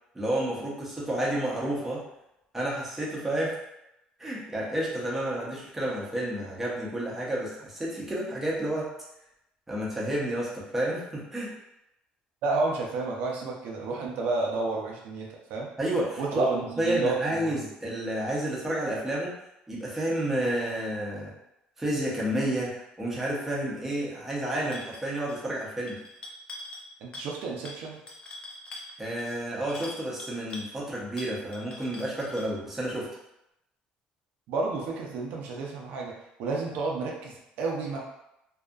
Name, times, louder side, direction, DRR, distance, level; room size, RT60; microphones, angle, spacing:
voice 1, 0.1-2.0 2.5-3.6 4.2-8.9 9.7-11.5 15.8-19.3 19.7-21.3 21.8-26.0 29.0-33.1, right 1 dB, 10° right, -6 dB, 0.7 m, -30 dB
voice 2, 12.4-15.7 16.2-17.6 27.0-28.0 34.5-38.0, right 3 dB, 75° right, -1 dB, 0.5 m, -31 dB
sound 1, 24.7-25.0 25.3-25.6 25.9-26.9 27.1-27.4 27.6-30.7 31.2-32.5, left 2 dB, 30° left, 0.4 m, -43 dB
2.7 x 2.4 x 2.4 m, 0.86 s
cardioid pair, 135°, 3 cm